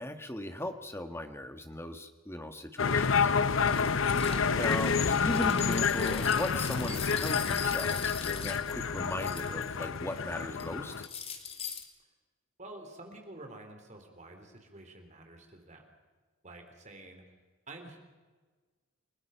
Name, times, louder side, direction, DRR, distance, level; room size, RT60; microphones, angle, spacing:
voice 1, 0.0-3.3 4.5-11.0, left 1 dB, 10° left, 7 dB, 1.5 m, -38 dB
sound 1, 2.8-11.1, left 6 dB, 65° left, 0.8 m, -29 dB
sound 2, 3.7-9.8 10.2-10.6 11.0-11.8, left 6 dB, 30° left, 2.1 m, -41 dB
voice 2, 4.1-4.5 12.6-15.9 16.4-17.2 17.7-18.0, right 2 dB, 35° right, 4 dB, 3.5 m, -49 dB
29.5 x 19.0 x 5.7 m, 1.3 s
head